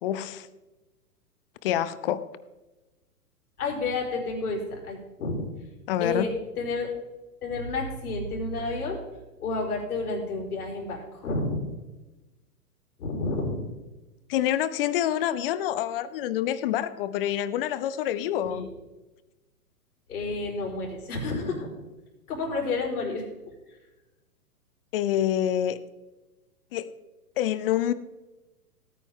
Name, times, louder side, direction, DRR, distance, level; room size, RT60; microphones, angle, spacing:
voice 1, 0.0-0.5 1.6-2.3 5.9-6.3 14.3-18.7 24.9-25.8 26.7-26.9 27.4-27.9, left 11 dB, 35° left, 16 dB, 0.7 m, -27 dB
voice 2, 3.6-5.5 6.0-6.9 7.4-9.0 9.4-11.7 13.0-13.7 18.4-18.7 20.1-21.7 22.3-23.5, left 3 dB, 65° left, -1 dB, 4.6 m, -30 dB
17.0 x 9.3 x 3.8 m, 1.1 s
hypercardioid pair, 130°, 47 cm